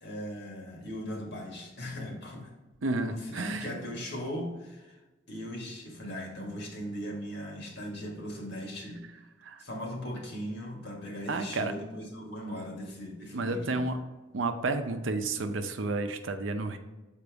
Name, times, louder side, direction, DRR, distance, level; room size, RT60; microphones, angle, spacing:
voice 1, 0.0-2.5 3.0-5.0 5.3-9.0 9.6-13.8, equal, 60° left, 0 dB, 1.7 m, -39 dB
voice 2, 2.8-3.7 9.4-9.6 11.3-11.7 13.3-14.0 14.3-16.8, right 3 dB, 75° right, 7 dB, 0.6 m, -31 dB
6.9 x 4.5 x 3.5 m, 1.1 s
head